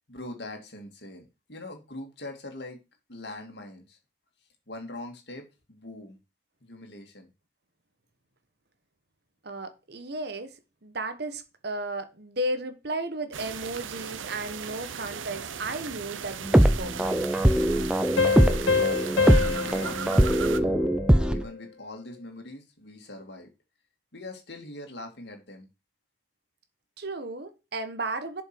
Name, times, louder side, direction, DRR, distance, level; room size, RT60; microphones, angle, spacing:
voice 1, 0.1-2.8 3.1-4.0 4.7-6.2 6.6-7.3 19.4-20.8 21.3-23.5 24.1-25.7, left 2 dB, 60° left, 2.4 m, -42 dB
voice 2, 9.4-10.6 10.8-17.2 27.0-28.4, right 2 dB, 55° right, 1.1 m, -34 dB
sound 1, 13.3-20.6, right 7 dB, 90° right, 0.7 m, -37 dB
sound 2, 16.4-21.4, equal, 5° right, 0.5 m, -22 dB
sound 3, 18.2-21.5, left 5 dB, 85° left, 1.6 m, -27 dB
7.3 x 5.3 x 6.1 m
head